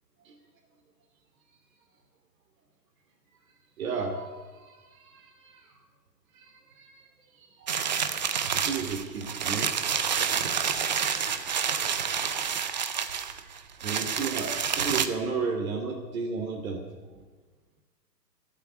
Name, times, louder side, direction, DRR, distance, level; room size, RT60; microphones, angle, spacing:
voice 1, 3.8-5.8 6.3-7.0 7.4-7.7 8.5-9.7 10.0-10.1 13.3-16.8, right 5 dB, 55° right, 1 dB, 2.8 m, -34 dB
sound 1, 7.7-15.1, right 7 dB, 25° right, 0.6 m, -28 dB
17.5 x 8.3 x 9.9 m, 1.3 s
hypercardioid pair, 160°, 50 cm